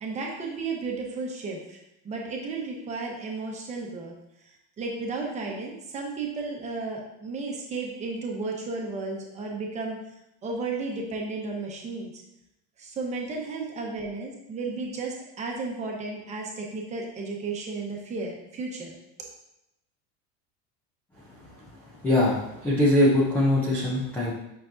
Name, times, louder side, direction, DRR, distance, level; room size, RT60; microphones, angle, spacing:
voice 1, 0.0-1.8 2.0-4.1 4.8-10.0 10.4-12.1 12.8-18.9, right 3 dB, 15° right, -1 dB, 0.9 m, -33 dB
voice 2, 22.0-24.3, left 1 dB, 5° left, -7 dB, 0.3 m, -22 dB
8.6 x 5.9 x 2.6 m, 0.84 s
cardioid pair, 175°, 42 cm